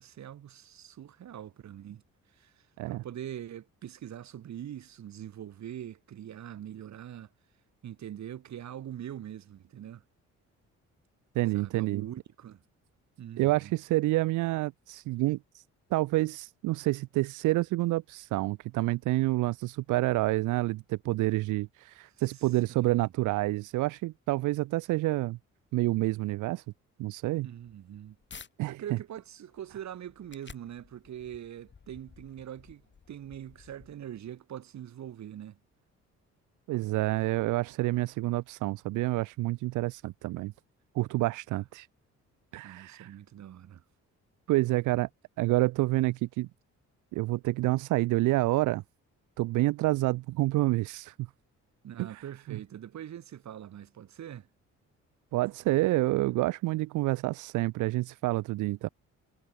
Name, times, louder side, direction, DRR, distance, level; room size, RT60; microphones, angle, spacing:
voice 1, 0.0-2.0 2.4-7.3 7.8-10.0 11.5-12.6 13.2-13.7 22.3-22.4 22.7-23.1 27.4-28.2 28.7-32.8 33.1-35.6 41.5-41.6 42.6-43.8 51.8-54.5, right 10 dB, 65° right, 3.5 m, -43 dB
voice 2, 11.3-12.1 13.4-15.6 15.9-25.4 25.7-26.6 27.0-27.5 28.6-29.0 36.7-40.5 40.9-41.9 42.5-43.1 44.5-45.1 45.4-46.5 47.1-48.8 49.4-51.1 52.0-52.2 52.5-52.6 55.3-58.9, right 19 dB, 85° right, 0.6 m, -28 dB
sound 1, 27.5-28.5 29.0-34.3, left 5 dB, 40° left, 4.6 m, -54 dB
cardioid pair, 90°, 30 cm